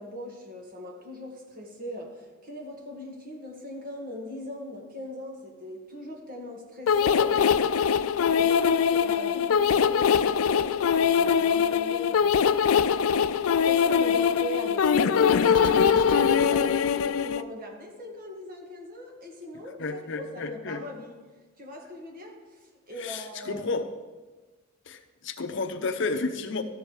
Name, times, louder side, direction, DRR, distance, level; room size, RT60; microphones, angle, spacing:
voice 1, 0.0-7.8 8.2-12.5 13.0-21.2 21.6-23.7, left 1 dB, 45° right, 0 dB, 1.8 m, -40 dB
sound 1, 6.9-17.4, left 7 dB, 80° left, 0.4 m, -22 dB
voice 2, 19.8-20.8 23.0-23.9 24.9-26.6, left 3 dB, 60° left, 7 dB, 0.7 m, -31 dB
13.0 x 7.1 x 4.7 m, 1.3 s
head